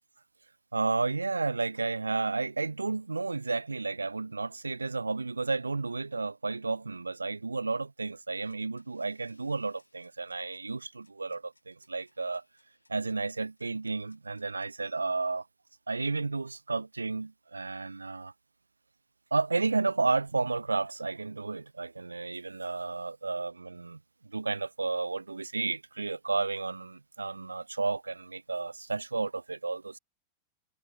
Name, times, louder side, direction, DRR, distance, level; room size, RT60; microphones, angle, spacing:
voice 1, 0.7-12.4 12.9-15.4 15.9-18.3 19.3-30.0, right 3 dB, 80° right, 0.4 m, -32 dB
sound 1, 8.5-14.7, left 2 dB, 85° left, 3.3 m, -69 dB
figure-of-eight pair, 90°, 0 cm